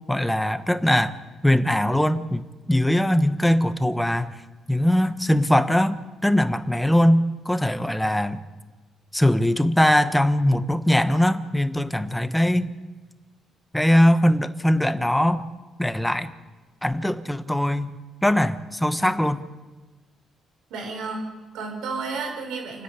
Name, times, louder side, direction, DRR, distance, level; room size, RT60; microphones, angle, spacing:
voice 1, 0.1-1.2 1.4-2.4 2.7-4.3 4.7-8.4 9.1-12.7 13.7-15.5 15.8-16.3 16.8-18.0 18.2-19.4, left 1 dB, 5° left, 11 dB, 1.3 m, -21 dB
voice 2, 20.7-22.8, right 4 dB, 85° right, 2 dB, 5.8 m, -32 dB
29.0 x 10.5 x 8.5 m, 1.2 s
cardioid pair, 90°, 0 cm